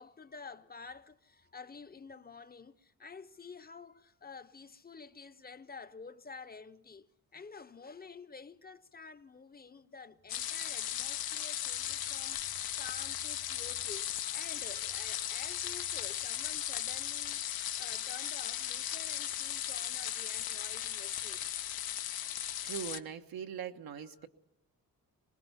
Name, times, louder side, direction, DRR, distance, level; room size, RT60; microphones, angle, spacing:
voice 1, 0.0-17.4 17.8-21.5 24.2-24.3, left 5 dB, 25° left, 0.7 m, -50 dB
sound 1, 10.3-23.0, left 11 dB, 85° left, 0.8 m, -37 dB
voice 2, 22.6-24.3, right 8 dB, 85° right, 1.3 m, -41 dB
23.5 x 20.0 x 5.6 m
cardioid pair, 100°, 35 cm